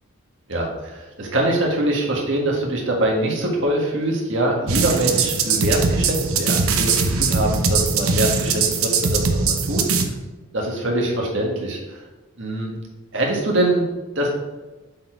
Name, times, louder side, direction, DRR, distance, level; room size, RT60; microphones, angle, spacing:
voice 1, 0.5-9.8 10.5-11.8 12.4-12.7 13.1-13.8 14.1-14.3, right 1 dB, 55° right, -1 dB, 1.6 m, -23 dB
sound 1, 4.7-10.1, right 4 dB, 80° right, 0.8 m, -21 dB
7.5 x 4.3 x 4.4 m, 1.2 s
head